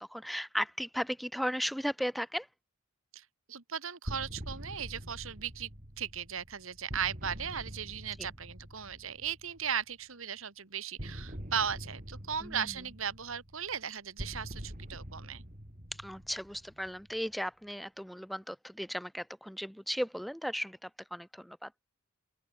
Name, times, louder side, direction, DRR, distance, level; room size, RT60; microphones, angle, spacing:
voice 1, 0.0-2.5 12.4-12.7 16.0-21.7, equal, ahead, 2.8 m, -36 dB
voice 2, 3.1-5.7 6.0-15.4, right 7 dB, 70° right, 1.8 m, -37 dB
sound 1, 4.1-9.8 11.0-17.3, equal, 40° right, 5.1 m, -45 dB
open air
head